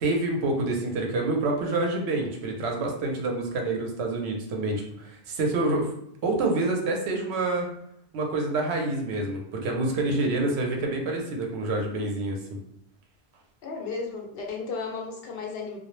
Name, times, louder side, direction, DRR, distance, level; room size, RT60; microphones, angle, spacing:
voice 1, 0.0-5.9 6.2-7.7 8.1-12.6, right 2 dB, 85° right, 1 dB, 0.9 m, -27 dB
voice 2, 13.6-15.8, left 4 dB, 70° left, 1 dB, 0.8 m, -34 dB
2.2 x 2.0 x 3.0 m, 0.74 s
omnidirectional pair, 1.1 m